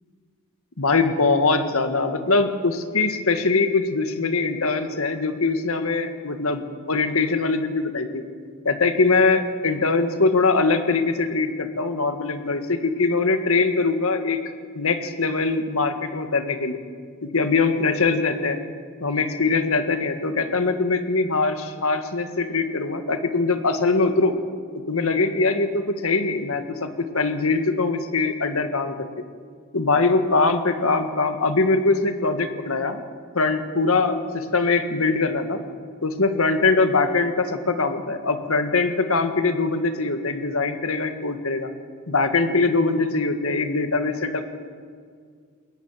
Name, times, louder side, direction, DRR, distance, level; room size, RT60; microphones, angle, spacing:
voice 1, 0.8-6.6 6.9-8.2 8.7-14.4 14.7-16.8 17.2-18.6 19.0-24.4 24.9-29.1 29.7-33.0 33.3-35.6 36.0-41.7 42.1-44.4, left 3 dB, 75° left, 8 dB, 1.7 m, -22 dB
21.5 x 18.5 x 7.4 m, 2.1 s
head